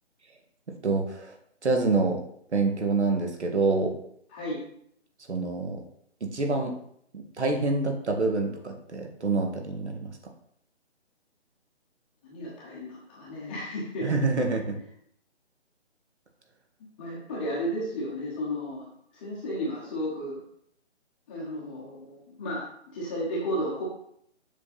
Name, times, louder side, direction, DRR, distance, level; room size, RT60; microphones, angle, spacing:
voice 1, 0.7-1.4 1.6-2.2 2.5-3.9 5.3-5.8 6.2-6.8 7.1-10.3 14.0-14.8, right 3 dB, 75° right, 3 dB, 2.0 m, -27 dB
voice 2, 4.3-4.6 12.2-14.1 17.0-20.4 21.3-23.8, equal, 10° left, -5 dB, 0.9 m, -33 dB
7.4 x 6.2 x 4.2 m, 0.69 s
hypercardioid pair, 160°, 34 cm